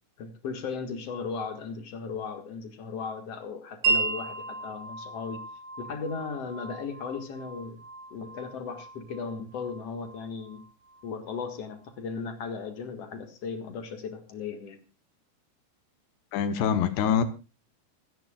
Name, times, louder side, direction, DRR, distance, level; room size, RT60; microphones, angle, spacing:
voice 1, 0.2-5.4 5.8-7.8 8.1-10.6 11.0-14.8, left 5 dB, 50° left, 1.9 m, -36 dB
Wind chime, 3.8-11.5, right 4 dB, 85° right, 5.2 m, -35 dB
voice 2, 16.3-17.2, left 7 dB, 75° left, 3.1 m, -24 dB
28.0 x 10.0 x 2.4 m
omnidirectional pair, 5.1 m